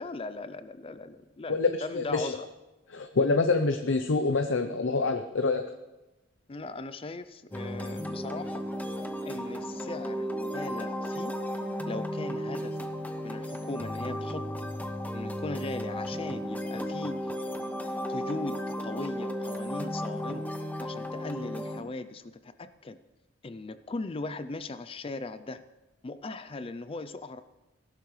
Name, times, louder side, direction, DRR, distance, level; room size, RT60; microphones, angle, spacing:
voice 1, 0.0-2.5 6.5-8.6 9.2-11.4 11.9-12.8 13.2-14.7 15.1-17.3 18.1-20.5 20.8-23.0 23.4-25.6 26.0-27.4, left 3 dB, 30° left, 12 dB, 0.4 m, -39 dB
voice 2, 1.5-2.3 2.9-5.6, left 3 dB, 75° left, 7 dB, 0.7 m, -26 dB
sound 1, 7.5-21.8, equal, 10° left, 0.8 m, -34 dB
17.0 x 11.5 x 3.2 m, 1.1 s
head